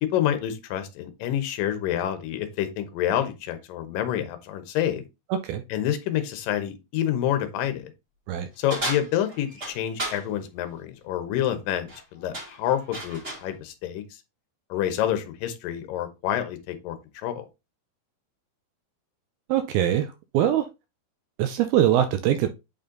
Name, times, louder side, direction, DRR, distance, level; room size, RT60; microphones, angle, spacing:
voice 1, 0.0-5.0 5.7-7.9 8.6-14.0 14.7-17.5, left 11 dB, 70° left, 2.4 m, -28 dB
voice 2, 5.3-5.6 8.3-8.5 19.5-20.7 21.4-22.5, right 11 dB, 80° right, 2.3 m, -23 dB
sound 1, 8.7-10.2 11.7-12.0 12.3-13.5, right 1 dB, 20° right, 2.1 m, -33 dB
8.6 x 4.3 x 3.8 m
omnidirectional pair, 4.7 m